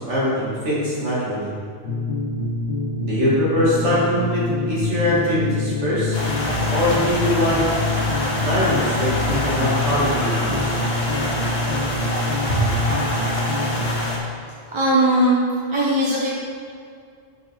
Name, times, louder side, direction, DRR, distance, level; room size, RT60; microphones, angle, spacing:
voice 1, 0.0-1.5 3.0-6.2 6.7-7.6 8.4-10.7 12.5-12.6, left 1 dB, 85° right, -8 dB, 2.4 m, -22 dB
sound 1, 1.8-14.0, left 2 dB, 85° left, 1.3 m, -26 dB
sound 2, 6.1-14.2, left 1 dB, 60° left, 1.3 m, -26 dB
voice 2, 14.7-15.4 15.7-16.3, right 1 dB, 30° right, -6 dB, 0.7 m, -18 dB
6.4 x 5.2 x 4.6 m, 2.3 s
omnidirectional pair, 1.2 m